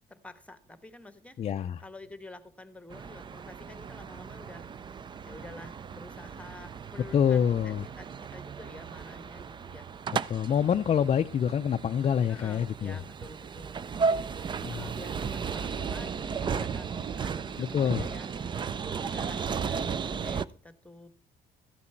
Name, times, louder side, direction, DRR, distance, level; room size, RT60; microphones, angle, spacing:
voice 1, 0.1-1.5 1.8-4.7 5.2-9.9 12.3-14.2 14.7-16.9 17.2-18.4 19.0-21.1, left 2 dB, 10° left, 1.2 m, -48 dB
voice 2, 1.4-1.8 7.1-7.8 10.3-13.0 14.6-14.9 17.6-18.1, left 8 dB, 35° left, 0.4 m, -26 dB
sound 1, 2.9-20.4, right 6 dB, 25° right, 0.4 m, -35 dB
13.5 x 8.3 x 4.4 m
cardioid pair, 110°, 17 cm